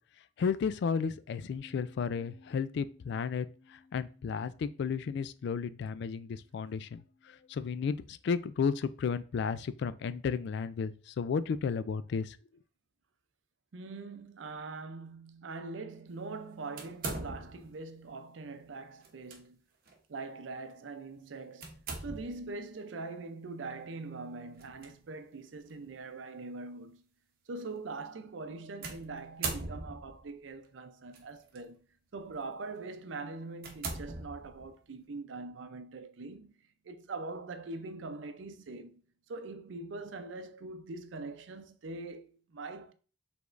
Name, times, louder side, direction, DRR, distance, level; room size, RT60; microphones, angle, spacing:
voice 1, 0.4-3.5 3.7-7.0 7.5-12.4, left 6 dB, 65° left, 0.3 m, -33 dB
Bass guitar, 1.6-7.8, left 3 dB, 5° left, 0.6 m, -61 dB
voice 2, 13.7-19.6 20.1-27.0 27.5-31.9 32.1-36.5 36.8-39.0 39.3-42.9, right 3 dB, 85° right, 0.5 m, -43 dB
sound 1, 16.8-17.8 19.0-19.4 19.9-20.0 21.6-22.5 24.6-24.9 25.7-25.8 28.8-30.2 31.1-31.6 32.2-32.4 32.9-33.0 33.6-34.8, right 3 dB, 55° right, 0.9 m, -40 dB
4.9 x 3.4 x 2.5 m
head